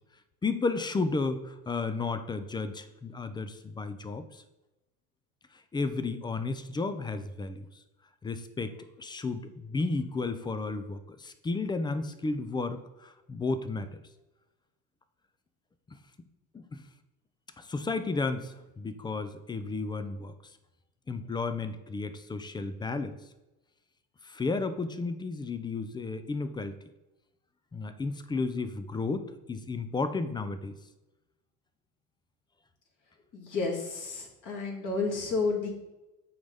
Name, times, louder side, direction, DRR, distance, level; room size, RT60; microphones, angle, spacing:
voice 1, 0.4-4.4 5.5-7.7 8.2-13.9 16.5-16.8 17.6-20.3 21.1-23.2 24.2-26.8 27.7-30.7, left 3 dB, 10° left, 10 dB, 0.3 m, -33 dB
voice 2, 33.3-35.7, left 4 dB, 45° left, -1 dB, 2.3 m, -31 dB
8.5 x 4.0 x 3.4 m, 1.0 s
hypercardioid pair, 85°, 45 cm